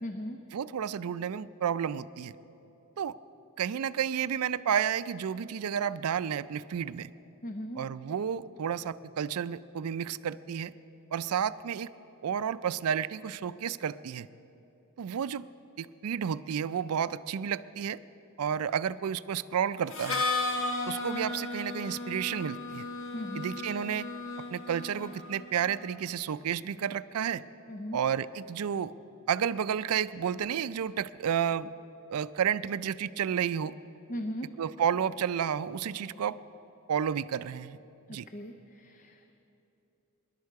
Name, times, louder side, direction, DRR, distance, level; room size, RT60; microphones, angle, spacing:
voice 1, 0.0-0.4 7.4-7.8 23.1-23.5 27.7-28.0 34.1-34.5 38.1-39.3, equal, 35° left, 6 dB, 0.6 m, -38 dB
voice 2, 0.5-2.3 3.0-3.1 3.6-7.1 7.8-10.7 11.1-11.9 12.2-14.3 15.0-15.4 15.8-18.0 18.4-20.2 20.9-22.9 23.3-24.1 24.5-27.4 27.9-28.9 29.3-31.7 32.1-33.7 34.6-36.4 36.9-37.8 38.1-38.3, right 8 dB, 75° right, 16 dB, 0.4 m, -31 dB
Harmonica, 19.9-25.6, left 3 dB, 60° left, 1.5 m, -35 dB
24.0 x 11.5 x 4.7 m, 3.0 s
head